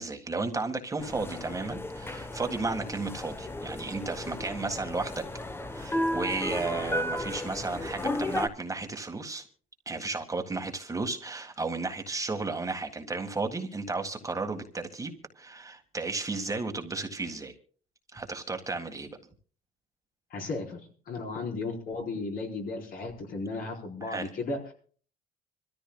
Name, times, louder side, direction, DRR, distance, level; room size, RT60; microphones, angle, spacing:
voice 1, 0.0-5.2 5.7-9.4 9.9-17.5 18.1-19.1 24.0-24.3, right 3 dB, 20° right, 5 dB, 1.7 m, -33 dB
sound 1, 1.0-8.5, left 1 dB, 15° left, 1.0 m, -34 dB
voice 2, 20.3-24.7, left 3 dB, 60° left, 1 dB, 4.4 m, -35 dB
25.5 x 14.0 x 2.3 m, 0.43 s
cardioid pair, 110°, 17 cm